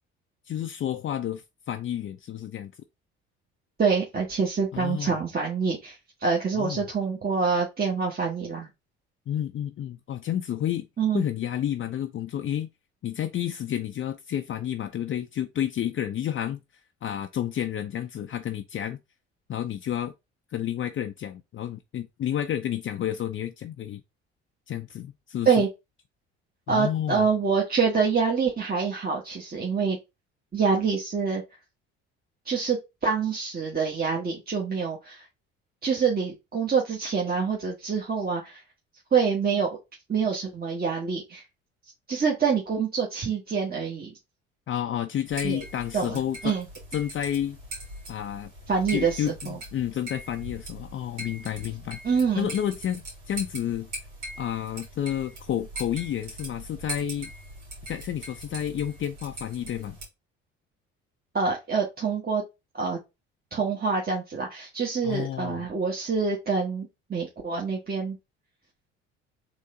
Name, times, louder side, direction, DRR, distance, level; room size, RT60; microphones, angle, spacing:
voice 1, 0.5-2.7 4.7-5.2 6.5-6.9 9.3-10.9 11.1-12.7 13.0-16.6 17.0-19.0 19.5-20.1 20.5-24.0 24.7-25.6 26.7-27.3 44.7-46.6 46.9-47.6 48.1-48.5 48.9-52.0 52.4-53.9 54.4-57.3 57.9-60.0 65.0-65.7, left 10 dB, 40° left, 0.5 m, -30 dB
voice 2, 3.8-8.7 11.0-11.2 25.4-25.7 26.7-30.0 30.5-31.4 32.4-35.3 35.8-38.6 39.1-39.7 40.1-41.4 42.1-44.1 45.4-45.6 45.9-46.7 48.7-49.6 52.0-52.5 61.3-62.4 62.7-63.0 63.5-68.2, right 5 dB, 30° right, 1.4 m, -26 dB
sound 1, 45.3-60.1, right 1 dB, 85° right, 2.5 m, -41 dB
3.9 x 3.3 x 3.7 m
hypercardioid pair, 60°, 31 cm